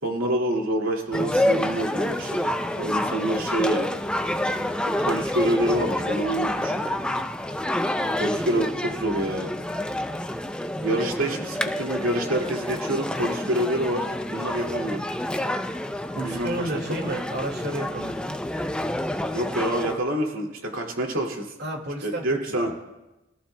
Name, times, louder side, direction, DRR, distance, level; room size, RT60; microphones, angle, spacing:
voice 1, 0.0-3.9 5.0-6.8 8.2-9.5 10.8-15.0 16.2-16.7 19.3-21.5 22.0-22.7, right 1 dB, 85° right, 0 dB, 2.4 m, -27 dB
sound 1, 1.1-20.0, left 1 dB, 5° left, 0.5 m, -28 dB
voice 2, 8.0-8.3 16.1-18.4 21.6-22.4 22.7-22.8, right 1 dB, 55° right, 2 dB, 2.1 m, -32 dB
23.5 x 14.5 x 2.3 m, 1.0 s
head